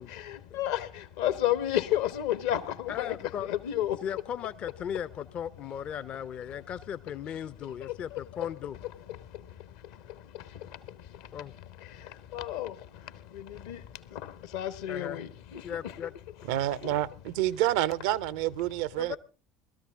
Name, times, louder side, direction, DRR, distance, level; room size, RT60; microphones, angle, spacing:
voice 1, 0.0-4.1 7.7-8.5 8.8-16.1 16.7-17.0, left 12 dB, 70° left, 1.2 m, -34 dB
voice 2, 2.9-3.5 4.0-8.8 11.3-11.5 14.9-15.2 15.6-16.1 19.0-19.2, left 9 dB, 45° left, 0.6 m, -37 dB
voice 3, 16.5-19.2, right 14 dB, 70° right, 0.6 m, -28 dB
20.0 x 13.5 x 3.6 m
hypercardioid pair, 65°, 3 cm